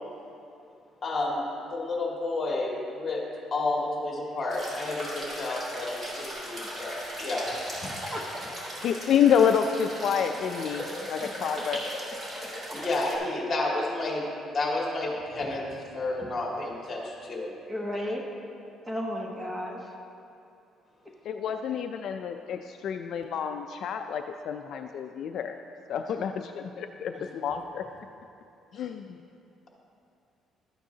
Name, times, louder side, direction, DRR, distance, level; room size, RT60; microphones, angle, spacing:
voice 1, 1.0-3.3 3.5-7.5 7.8-7.9 12.7-14.2 14.5-17.5 28.7-28.9, left 2 dB, 30° left, -2 dB, 2.0 m, -31 dB
sound 1, 4.5-13.2, equal, 30° right, 2.5 m, -37 dB
voice 2, 8.8-11.8 21.2-25.6 25.9-27.8 28.7-29.2, left 8 dB, 60° left, 6 dB, 0.3 m, -28 dB
voice 3, 17.6-18.3 18.9-19.8, left 1 dB, 15° right, 0 dB, 1.0 m, -33 dB
13.0 x 8.9 x 2.8 m, 2.7 s
cardioid pair, 130°, 0 cm